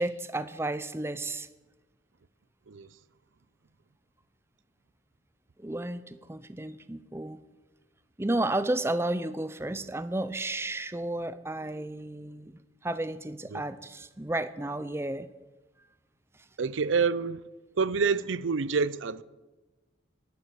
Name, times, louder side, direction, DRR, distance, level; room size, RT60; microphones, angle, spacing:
voice 1, 0.0-1.5 5.6-7.4 8.2-15.3, right 2 dB, 15° right, 0.5 m, -32 dB
voice 2, 16.6-17.4 17.8-19.2, right 5 dB, 90° right, 0.6 m, -27 dB
11.5 x 11.0 x 8.2 m
head